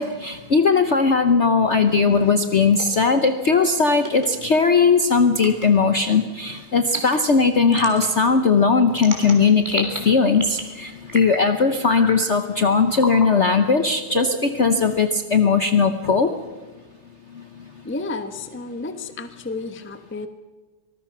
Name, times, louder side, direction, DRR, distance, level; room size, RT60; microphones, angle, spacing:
voice 1, 0.0-16.3, left 4 dB, 55° left, 8 dB, 0.8 m, -18 dB
sound 1, 2.7-3.0 4.0-4.3 5.3-5.7 6.8-7.2 7.7-8.1 9.0-10.0 10.3-10.7 11.1-11.5 11.8-12.2 13.0-13.3 14.1-15.0, equal, 10° right, 3.4 m, -31 dB
voice 2, 17.8-20.3, left 3 dB, 10° left, 9 dB, 0.5 m, -31 dB
24.5 x 19.5 x 6.0 m, 1.3 s
omnidirectional pair, 2.2 m